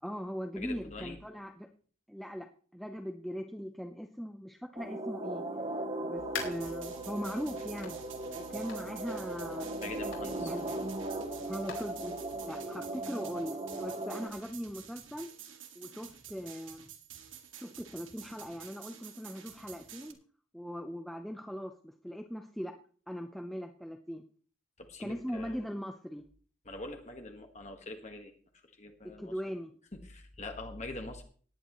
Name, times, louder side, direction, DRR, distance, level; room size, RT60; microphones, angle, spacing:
voice 1, 0.0-1.7 2.1-5.4 6.0-8.0 8.3-10.7 11.5-12.2 12.4-15.3 15.7-16.9 17.6-20.2 20.5-22.7 23.1-24.2 25.0-26.2 29.0-29.7, equal, ahead, 3 dB, 0.7 m, -40 dB
voice 2, 0.6-1.2 9.8-10.5 24.8-25.6 26.6-28.3 28.7-29.3 30.0-31.2, left 2 dB, 35° left, 4 dB, 1.6 m, -43 dB
sound 1, 4.8-14.3, right 2 dB, 30° right, 1.8 m, -38 dB
sound 2, 6.2-12.4, left 5 dB, 80° left, 4.7 m, -47 dB
sound 3, 6.4-20.1, right 9 dB, 80° right, 2.1 m, -51 dB
18.0 x 11.0 x 3.1 m, 0.43 s
head